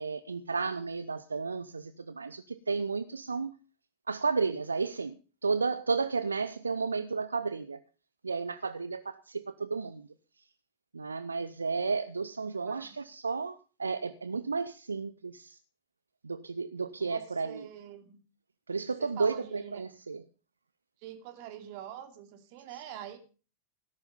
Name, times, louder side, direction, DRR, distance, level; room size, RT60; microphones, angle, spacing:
voice 1, 0.0-3.5 4.1-5.1 5.4-7.8 8.2-10.1 10.9-15.6 16.2-17.7 18.7-20.2, right 4 dB, 75° right, 0.7 m, -32 dB
voice 2, 17.0-18.2 19.0-19.8 21.0-23.2, right 10 dB, 45° right, 2.9 m, -45 dB
17.5 x 10.5 x 5.4 m
figure-of-eight pair, 90°, 0 cm